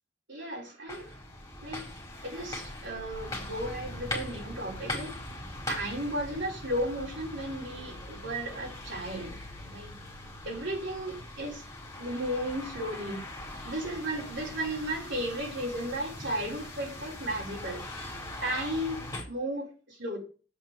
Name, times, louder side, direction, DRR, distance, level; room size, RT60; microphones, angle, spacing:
voice 1, 0.3-1.1 1.6-1.8 2.2-5.2 5.7-9.4 9.6-9.9 10.4-11.6 12.0-13.4 13.6-17.8 18.4-20.2, right 1 dB, 65° right, 4.4 m, -34 dB
sound 1, 0.9-19.2, left 1 dB, 15° left, 4.9 m, -41 dB
8.3 x 7.5 x 7.5 m
head